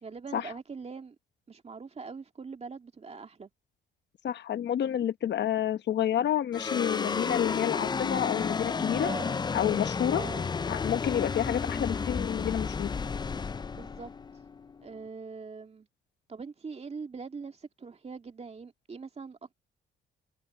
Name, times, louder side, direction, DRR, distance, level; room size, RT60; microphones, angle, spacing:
voice 1, 0.0-1.2 1.5-3.5 9.0-9.4 10.1-10.5 13.7-14.1 14.8-15.9 16.3-19.5, right 5 dB, 30° right, 2.4 m, -42 dB
voice 2, 4.2-9.1 9.5-10.2 10.7-12.9, left 10 dB, 60° left, 0.9 m, -29 dB
sound 1, 6.5-15.1, left 5 dB, 20° left, 0.4 m, -32 dB
cardioid pair, 90°, 20 cm